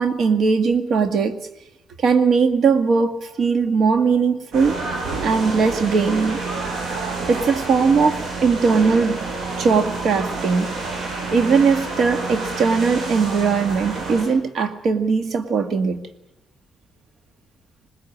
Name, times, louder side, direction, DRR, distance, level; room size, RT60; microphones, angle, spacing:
voice 1, 0.0-1.4 2.0-4.7 5.2-6.4 7.3-9.2 9.6-10.7 11.3-16.1, right 5 dB, 65° right, 7 dB, 1.9 m, -19 dB
sound 1, 4.5-14.2, right 3 dB, 85° right, 6.1 m, -29 dB
21.0 x 19.0 x 8.7 m, 0.91 s
cardioid pair, 90°, 0 cm